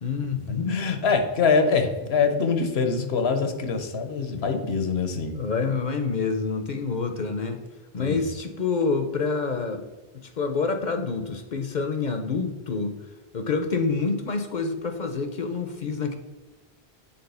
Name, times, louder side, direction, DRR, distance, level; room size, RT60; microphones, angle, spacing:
voice 1, 0.0-0.7 5.4-7.6 7.9-9.9 10.1-13.0 13.3-16.2, left 4 dB, 50° left, 6 dB, 0.7 m, -27 dB
voice 2, 0.7-5.4 8.0-8.2, left 5 dB, 85° left, 7 dB, 1.1 m, -24 dB
7.0 x 3.7 x 5.4 m, 1.2 s
omnidirectional pair, 1.0 m